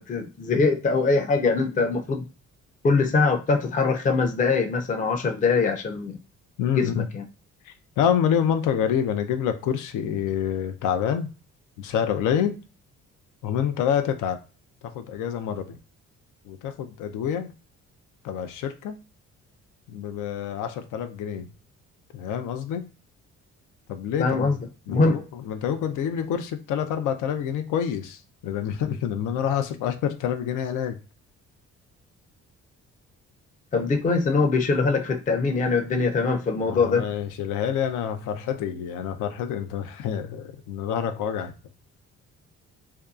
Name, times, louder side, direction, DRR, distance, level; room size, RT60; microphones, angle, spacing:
voice 1, 0.0-2.2 2.8-6.2 6.7-7.2 24.2-24.6 24.9-25.2 33.7-37.1, left 4 dB, 25° left, 0.4 m, -22 dB
voice 2, 6.6-7.1 7.7-11.3 11.8-12.6 13.4-14.4 14.9-15.8 16.5-17.5 18.2-19.0 19.9-21.5 22.1-22.9 23.9-24.6 24.9-31.0 36.7-41.5, left 8 dB, 85° left, 0.5 m, -27 dB
2.7 x 2.2 x 2.3 m
cardioid pair, 90°, 30 cm